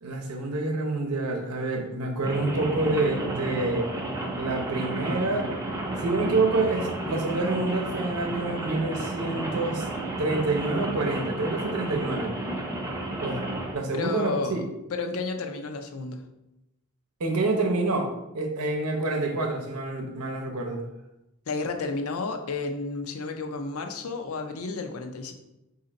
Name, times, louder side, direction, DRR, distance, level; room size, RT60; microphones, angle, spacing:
voice 1, 0.0-3.9 4.4-5.5 6.0-9.9 10.2-12.3 13.2-13.4 13.7-14.6 17.2-20.9, right 2 dB, 90° right, 2 dB, 0.8 m, -27 dB
Rain, 2.2-13.7, right 1 dB, 15° right, 0.5 m, -32 dB
voice 2, 13.9-14.6 14.9-16.2 21.5-25.3, left 3 dB, 75° left, 5 dB, 0.5 m, -32 dB
4.2 x 2.7 x 3.8 m, 0.91 s
head